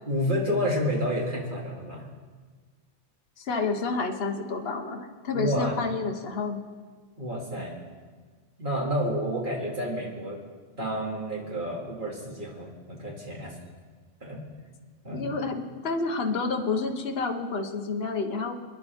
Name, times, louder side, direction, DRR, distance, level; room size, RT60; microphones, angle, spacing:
voice 1, 0.1-2.1 5.3-5.8 7.2-7.7 8.6-10.4 10.8-13.5 14.2-14.4 15.0-15.3, equal, 35° right, -3 dB, 2.7 m, -30 dB
voice 2, 3.4-6.6 15.1-18.5, left 4 dB, 50° left, 3 dB, 1.4 m, -29 dB
26.5 x 10.5 x 3.6 m, 1.5 s
omnidirectional pair, 1.4 m